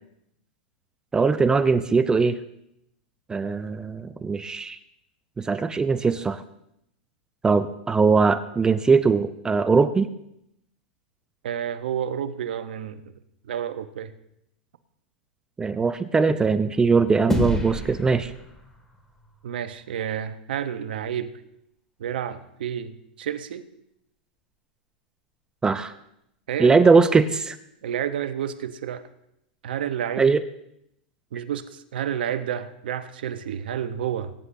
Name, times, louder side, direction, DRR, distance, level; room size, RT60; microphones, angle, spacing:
voice 1, 1.1-2.4 3.3-4.8 5.4-6.4 7.4-10.1 15.6-18.3 25.6-25.9 26.6-27.6 30.2-30.4, right 4 dB, 15° right, 13 dB, 0.5 m, -20 dB
voice 2, 11.4-13.0 13.4-14.1 15.8-15.9 19.4-21.3 22.0-23.7 26.5-26.8 27.8-29.1 29.6-30.4 31.3-34.3, right 9 dB, 75° right, 11 dB, 0.9 m, -30 dB
sound 1, 17.3-19.9, left 1 dB, 5° left, 2.0 m, -30 dB
20.5 x 10.0 x 2.6 m, 0.79 s
hypercardioid pair, 115°, 5 cm